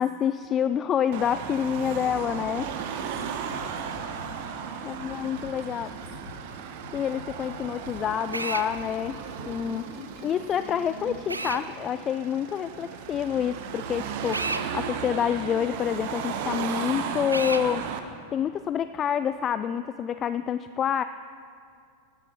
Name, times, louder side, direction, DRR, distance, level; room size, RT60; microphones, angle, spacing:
voice 1, 0.0-2.7 4.8-5.9 6.9-9.2 9.5-9.8 10.2-17.9 18.3-21.0, left 9 dB, 25° left, 12 dB, 0.3 m, -27 dB
Car passing by / Traffic noise roadway noise / Engine, 1.1-18.0, right 7 dB, 50° right, 1.0 m, -35 dB
Drum kit / Drum, 2.3-9.6, left 1 dB, 85° left, 3.5 m, -46 dB
voice 2, 3.4-6.4 9.6-10.3, left 2 dB, ahead, -5 dB, 3.8 m, -49 dB
Drill, 8.3-8.7 11.3-11.6 14.3-14.7 17.3-17.7, right 2 dB, 80° right, 0.6 m, -30 dB
14.0 x 11.5 x 5.5 m, 2.4 s
figure-of-eight pair, 90°, 0 cm